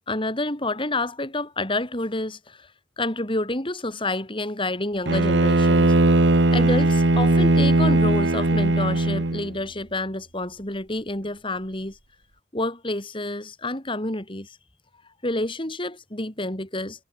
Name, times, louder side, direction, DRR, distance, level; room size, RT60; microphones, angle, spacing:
voice 1, 0.0-2.7 3.0-5.9 6.5-12.0 12.5-14.6 15.2-17.0, left 2 dB, 30° left, 4.0 m, -29 dB
Bowed string instrument, 5.1-9.5, right 2 dB, 80° right, 1.4 m, -19 dB
head